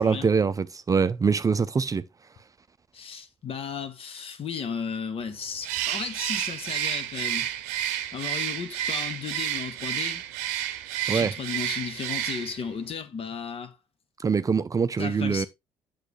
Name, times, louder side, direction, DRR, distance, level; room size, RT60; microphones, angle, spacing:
voice 1, 0.0-2.0 11.1-11.3 14.2-15.4, right 5 dB, 25° right, 0.5 m, -24 dB
voice 2, 2.9-7.5 8.1-10.2 11.1-13.8 15.0-15.5, left 6 dB, 45° left, 1.2 m, -34 dB
Bird, 5.6-12.7, right 12 dB, 70° right, 0.7 m, -30 dB
8.0 x 6.5 x 3.1 m
hypercardioid pair, 55°, 13 cm